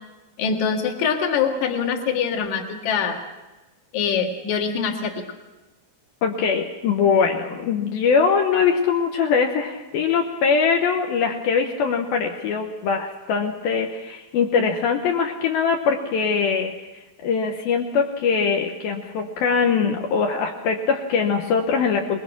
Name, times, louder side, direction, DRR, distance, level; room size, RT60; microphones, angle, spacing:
voice 1, 0.4-3.2 3.9-5.2, left 6 dB, 55° left, 3 dB, 2.8 m, -24 dB
voice 2, 6.2-16.7 17.2-22.2, left 5 dB, 75° left, 3 dB, 2.8 m, -22 dB
23.0 x 21.0 x 6.0 m, 1.1 s
omnidirectional pair, 4.5 m